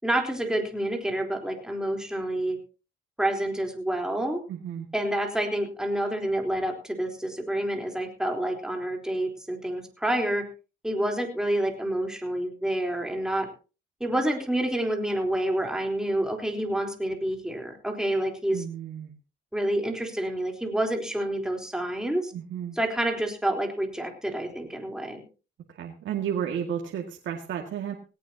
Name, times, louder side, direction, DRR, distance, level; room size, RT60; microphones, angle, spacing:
voice 1, 0.0-2.6 3.2-4.4 4.9-10.4 10.8-13.5 14.0-18.6 19.5-22.3 22.7-25.2, right 1 dB, 5° right, 2 dB, 3.9 m, -28 dB
voice 2, 4.5-4.9 18.5-19.1 22.3-22.8 25.8-27.9, right 9 dB, 70° right, 1 dB, 2.2 m, -32 dB
18.0 x 17.5 x 2.9 m, 0.34 s
cardioid pair, 90°, 20 cm